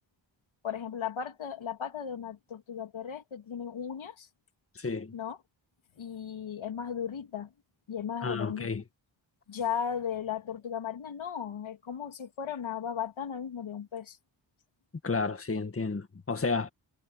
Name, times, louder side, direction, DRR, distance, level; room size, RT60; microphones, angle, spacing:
voice 1, 0.6-4.3 5.1-5.4 6.0-7.5 7.9-8.7 9.5-14.2, left 8 dB, 80° left, 3.1 m, -36 dB
voice 2, 4.7-5.1 8.2-8.8 15.0-16.7, left 4 dB, 30° left, 1.8 m, -31 dB
cardioid pair, 70°, 46 cm